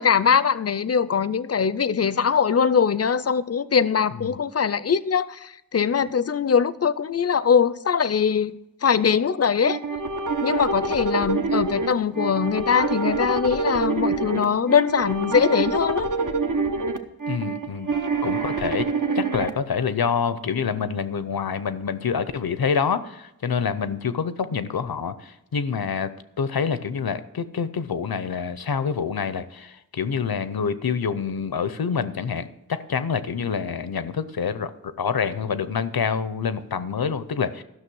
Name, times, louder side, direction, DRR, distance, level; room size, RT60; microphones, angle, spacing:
voice 1, 0.0-8.5 8.8-9.8 10.4-16.1, left 6 dB, 45° left, 17 dB, 0.5 m, -22 dB
sound 1, 9.6-19.5, right 4 dB, 60° right, 0.9 m, -26 dB
voice 2, 17.3-17.9 18.2-18.9 19.1-26.1 26.4-37.6, left 6 dB, 90° left, 13 dB, 0.7 m, -27 dB
13.0 x 6.3 x 6.2 m, 0.87 s
wide cardioid pair, 60°, 35 cm